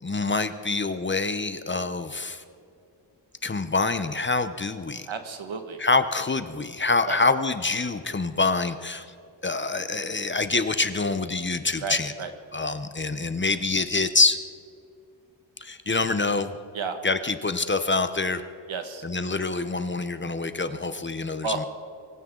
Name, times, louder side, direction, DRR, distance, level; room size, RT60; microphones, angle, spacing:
voice 1, 0.0-2.4 3.4-5.1 5.8-9.1 9.4-12.1 12.5-14.4 15.6-16.5 17.0-18.4 19.0-21.6, left 3 dB, 25° left, 10 dB, 0.7 m, -26 dB
voice 2, 5.1-5.8 7.1-7.2 11.8-12.3 16.7-17.0 18.7-19.0 21.4-21.6, right 4 dB, 90° right, 6 dB, 1.7 m, -32 dB
24.5 x 15.5 x 3.8 m, 2.5 s
wide cardioid pair, 160°, 45 cm